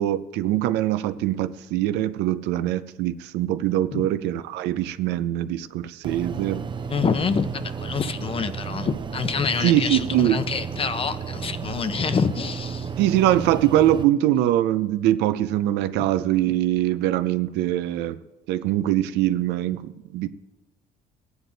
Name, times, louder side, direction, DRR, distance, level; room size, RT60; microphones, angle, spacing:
voice 1, 0.0-6.6 9.6-10.4 13.0-18.2 18.5-20.3, right 13 dB, 90° right, 12 dB, 0.6 m, -23 dB
sound 1, 6.0-14.0, right 6 dB, 30° right, 0.7 m, -33 dB
voice 2, 6.9-12.9 16.0-16.1, left 6 dB, 35° left, 12 dB, 0.8 m, -27 dB
16.0 x 9.5 x 4.0 m, 1.0 s
cardioid pair, 110°, 17 cm